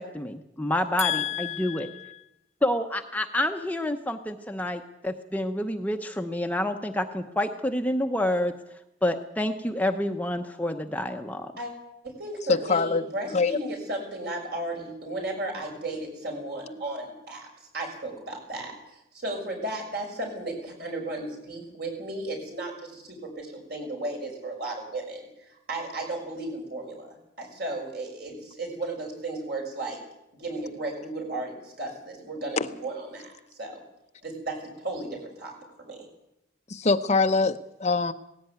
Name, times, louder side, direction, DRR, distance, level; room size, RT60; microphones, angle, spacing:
voice 1, 0.0-1.9 2.6-8.5 9.0-11.5, left 1 dB, 10° left, 5 dB, 0.9 m, -28 dB
voice 2, 1.0-1.8 12.5-13.0 13.3-13.6 36.7-38.1, left 4 dB, 35° left, 10 dB, 0.7 m, -24 dB
voice 3, 12.0-17.5 17.7-18.7 19.1-30.0 30.4-33.3 33.6-33.8 34.2-36.0, right 2 dB, 55° right, 1 dB, 6.4 m, -35 dB
18.0 x 16.5 x 9.3 m, 0.85 s
head